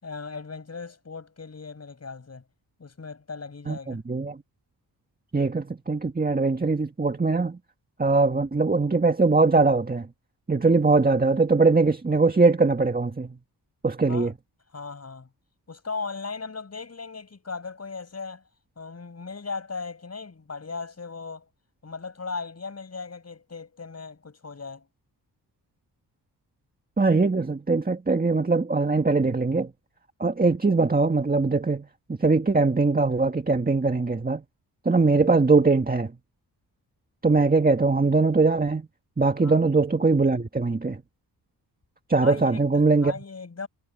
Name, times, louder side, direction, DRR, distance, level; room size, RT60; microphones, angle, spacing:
voice 1, 0.0-2.4 2.8-4.0 14.1-14.3 14.7-15.3 15.7-18.4 18.8-21.5 21.8-24.9 39.4-39.6 42.2-43.7, left 4 dB, 35° left, 6.9 m, -37 dB
voice 2, 3.7-4.4 5.3-7.6 8.0-10.1 10.5-13.4 13.8-14.3 27.0-29.7 30.2-31.9 32.2-34.4 34.9-36.1 37.2-38.8 39.2-41.0 42.1-43.1, right 3 dB, 20° right, 1.7 m, -21 dB
cardioid pair, 95°, 42 cm